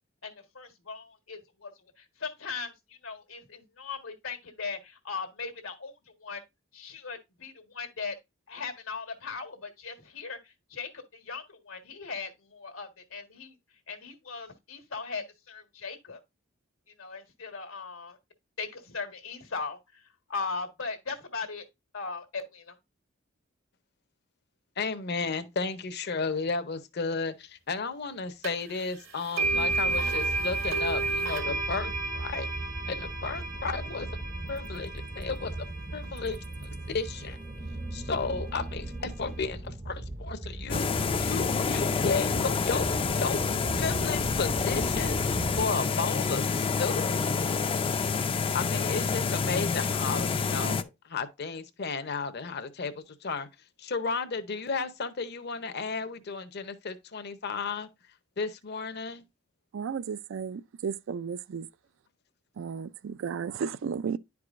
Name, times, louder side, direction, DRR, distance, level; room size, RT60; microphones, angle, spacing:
voice 1, 0.2-1.7 2.0-6.4 6.7-8.1 8.5-13.6 13.9-16.2 17.0-18.2 18.6-21.6 21.9-22.7, left 4 dB, 90° left, 1.5 m, -39 dB
voice 2, 24.8-32.5 32.9-34.1 34.5-34.9 35.2-36.4 36.9-37.4 37.9-40.9 41.2-42.9 43.2-43.4 43.8-47.1 48.5-53.5 53.8-57.9 58.4-59.2, left 4 dB, 55° left, 0.7 m, -33 dB
sound 1, 28.4-28.5 29.4-37.4, right 3 dB, 85° right, 2.4 m, -32 dB
sound 2, 29.4-45.7, right 2 dB, 20° right, 0.6 m, -38 dB
sound 3, 40.7-50.8, left 5 dB, 25° left, 0.4 m, -28 dB
voice 3, 59.7-61.7 62.6-64.2, right 6 dB, 65° right, 0.4 m, -34 dB
10.5 x 4.7 x 2.5 m
head